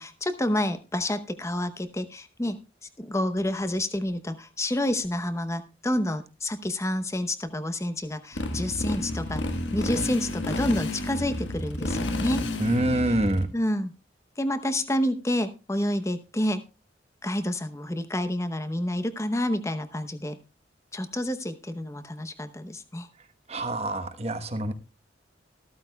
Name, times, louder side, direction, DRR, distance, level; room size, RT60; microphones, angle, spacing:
voice 1, 0.0-2.6 3.0-9.4 9.7-12.4 13.5-13.9 14.4-16.6 17.2-20.4 20.9-23.1, left 1 dB, 15° left, 11 dB, 0.8 m, -29 dB
Motorcycle, 8.3-13.4, left 1 dB, 75° left, 1.5 m, -30 dB
voice 2, 12.6-13.5 23.5-24.7, right 1 dB, 35° right, 9 dB, 1.1 m, -26 dB
14.5 x 13.5 x 2.3 m, 0.30 s
head